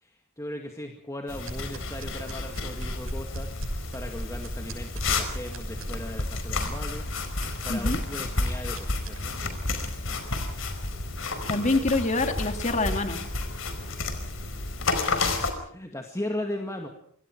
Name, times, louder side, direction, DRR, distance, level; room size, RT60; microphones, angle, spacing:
voice 1, 0.0-7.1 7.6-9.6 10.0-10.5 15.4-16.9, left 1 dB, 15° left, 3 dB, 2.1 m, -38 dB
sound 1, 1.3-15.5, left 3 dB, 65° left, 4.7 m, -31 dB
sound 2, 1.4-9.2, right 1 dB, 80° right, 6.8 m, -40 dB
voice 2, 11.5-13.2, left 2 dB, 35° left, 6 dB, 2.6 m, -26 dB
28.0 x 24.5 x 4.8 m, 0.65 s
head